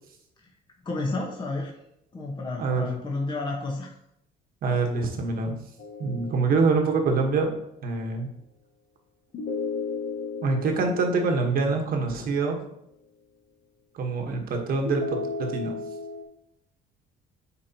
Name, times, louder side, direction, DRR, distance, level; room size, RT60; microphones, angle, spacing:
voice 1, 0.8-1.7 2.1-3.9, left 2 dB, 25° left, -1 dB, 1.2 m, -31 dB
voice 2, 4.6-5.6 6.0-7.5 7.8-8.3 10.4-12.6 13.9-15.2 15.5-15.7, right 4 dB, 60° right, 3 dB, 1.3 m, -25 dB
sound 1, 5.8-7.3 9.3-12.5 14.9-16.2, left 4 dB, 55° left, 1.0 m, -35 dB
8.4 x 4.5 x 2.9 m, 0.77 s
cardioid pair, 110°, 17 cm